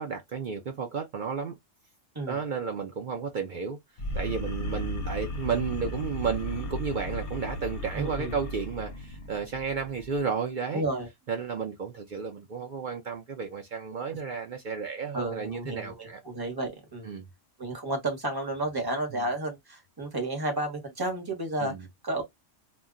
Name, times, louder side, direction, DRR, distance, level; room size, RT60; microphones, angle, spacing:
voice 1, 0.0-1.5 2.3-3.8 4.1-10.8 11.3-16.2 17.0-17.3 19.1-19.3 21.6-21.9, right 6 dB, 60° right, 0.5 m, -32 dB
sound 1, 4.0-10.3, left 1 dB, 55° left, 0.6 m, -35 dB
voice 2, 7.9-8.3 10.7-11.1 15.1-17.1 17.6-21.7 22.0-22.2, right 2 dB, 20° right, 0.8 m, -32 dB
2.2 x 2.1 x 3.6 m
omnidirectional pair, 1.3 m